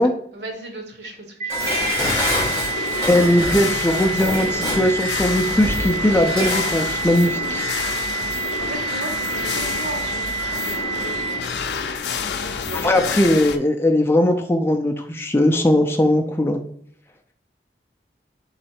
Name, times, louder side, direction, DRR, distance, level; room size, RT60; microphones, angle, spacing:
voice 1, 0.0-2.0 8.6-11.8 12.3-12.9 13.2-13.3, right 2 dB, 80° right, 3 dB, 1.0 m, -37 dB
sound 1, 1.4-11.4, right 6 dB, 40° right, 0.5 m, -28 dB
Dishes pots and pans, 1.5-6.8 7.1-7.2, left 1 dB, 15° right, 1.6 m, -27 dB
sound 2, 1.6-13.6, left 6 dB, 80° left, 0.4 m, -28 dB
voice 2, 3.1-7.6 12.8-16.6, left 1 dB, 15° left, 4 dB, 0.4 m, -19 dB
3.8 x 3.2 x 4.3 m, 0.63 s
head